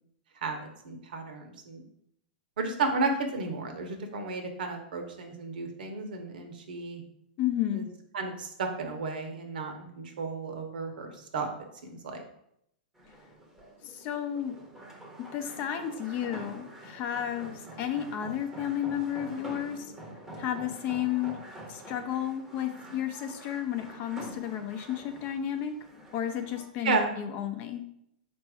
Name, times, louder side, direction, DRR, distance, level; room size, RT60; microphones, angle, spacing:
voice 1, 0.4-1.8 2.6-7.0 7.7-7.8 8.1-11.5 11.8-12.2 26.8-27.1, right 3 dB, 75° right, 4 dB, 1.0 m, -33 dB
voice 2, 7.4-7.9 13.8-14.6 15.3-19.9 20.4-21.3 21.7-25.7 26.1-27.8, left 10 dB, 40° left, 6 dB, 0.6 m, -32 dB
sound 1, 13.0-26.7, right 1 dB, 5° right, 0.9 m, -46 dB
4.2 x 2.6 x 4.8 m, 0.75 s
hypercardioid pair, 130°, 5 cm